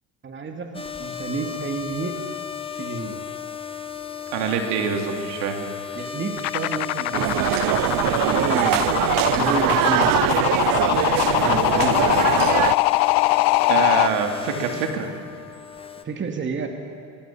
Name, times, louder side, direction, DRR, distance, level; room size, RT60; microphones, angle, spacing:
voice 1, 0.2-2.2 2.8-3.2 5.9-7.7 8.0-10.6 11.3-12.0 16.0-16.7, right 4 dB, 25° right, 4 dB, 2.5 m, -30 dB
sound 1, 0.7-16.0, left 8 dB, 15° left, 1.6 m, -35 dB
voice 2, 4.3-5.7 13.7-15.1, right 7 dB, 70° right, 3 dB, 3.2 m, -25 dB
sound 2, 6.4-14.1, left 22 dB, 70° left, 0.6 m, -22 dB
sound 3, 7.1-12.7, right 16 dB, 55° right, 0.7 m, -22 dB
23.5 x 20.5 x 8.6 m, 2.3 s
supercardioid pair, 110°, 42 cm